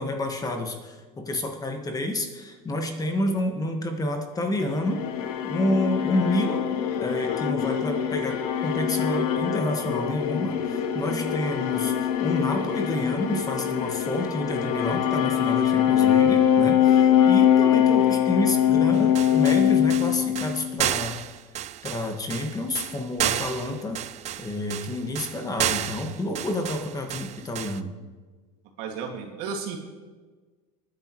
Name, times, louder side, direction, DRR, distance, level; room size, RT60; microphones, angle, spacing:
voice 1, 0.0-5.1 5.4-6.7 7.0-8.4 8.6-21.2 21.8-24.0 24.4-27.9, left 1 dB, 20° left, 4 dB, 1.7 m, -29 dB
sound 1, 4.5-20.9, left 9 dB, 75° left, 1.2 m, -23 dB
sound 2, 18.9-27.8, right 12 dB, 35° right, 0.6 m, -31 dB
voice 2, 28.8-29.8, right 5 dB, 65° right, 2 dB, 2.4 m, -33 dB
23.5 x 9.6 x 3.2 m, 1.4 s
supercardioid pair, 110°, 19 cm